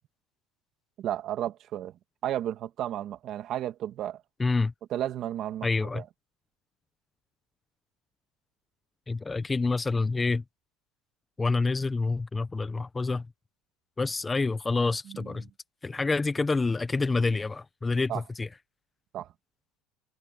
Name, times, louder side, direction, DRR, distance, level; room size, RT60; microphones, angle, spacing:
voice 1, 1.0-1.9 2.2-4.2 4.9-6.0 15.1-15.5 18.1-18.2 19.1-19.3, right 12 dB, 45° right, 2.2 m, -33 dB
voice 2, 4.4-4.7 5.6-6.0 9.1-10.4 11.4-13.3 14.0-15.4 15.8-18.5, left 3 dB, 15° left, 0.8 m, -27 dB
cardioid pair, 140°, 0 cm